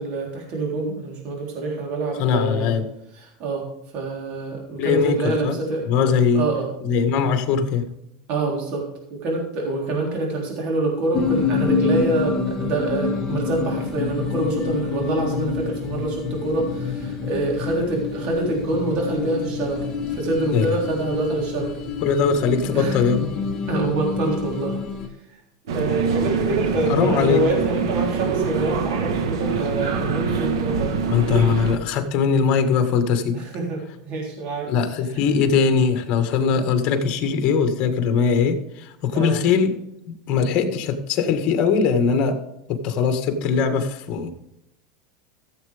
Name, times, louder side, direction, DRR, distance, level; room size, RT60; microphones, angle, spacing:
voice 1, 0.0-2.7 3.1-5.9 6.3-6.7 8.3-21.7 22.7-23.0 23.7-24.8 25.7-31.0 33.3-34.7 39.1-39.4, right 2 dB, 50° right, -1 dB, 3.7 m, -26 dB
voice 2, 2.2-2.8 4.8-5.5 5.9-6.4 6.8-7.8 20.5-20.8 22.0-23.3 26.9-27.4 31.1-33.4 34.7-39.8 40.1-42.4 42.7-44.3, left 6 dB, 45° left, 7 dB, 1.8 m, -21 dB
sound 1, 11.1-25.1, left 5 dB, 25° left, 1.8 m, -27 dB
sound 2, 25.7-31.8, right 5 dB, 90° right, 1.4 m, -24 dB
15.0 x 8.0 x 3.5 m, 0.83 s
supercardioid pair, 130°, 2 cm